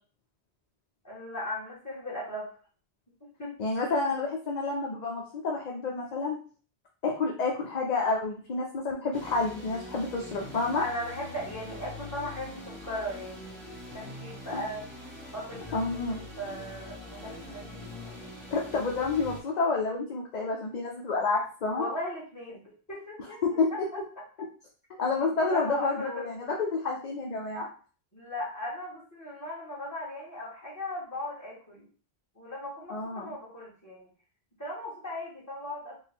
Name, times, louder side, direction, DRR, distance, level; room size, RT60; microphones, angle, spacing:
voice 1, 1.0-2.5 3.4-3.5 10.8-13.6 13.9-14.8 15.3-15.8 16.1-17.8 21.8-22.6 22.9-24.0 25.2-26.2 28.1-31.8 32.3-34.1 34.6-36.0, left 1 dB, 15° left, -6 dB, 1.5 m, -37 dB
voice 2, 3.6-6.4 7.0-10.9 14.5-14.6 15.7-16.2 18.5-21.9 23.4-23.7 25.0-27.7 32.9-33.3, left 3 dB, 50° left, -1 dB, 0.6 m, -29 dB
sound 1, 9.1-19.4, left 1 dB, ahead, 1.3 m, -43 dB
4.4 x 2.2 x 3.5 m, 0.40 s
omnidirectional pair, 1.1 m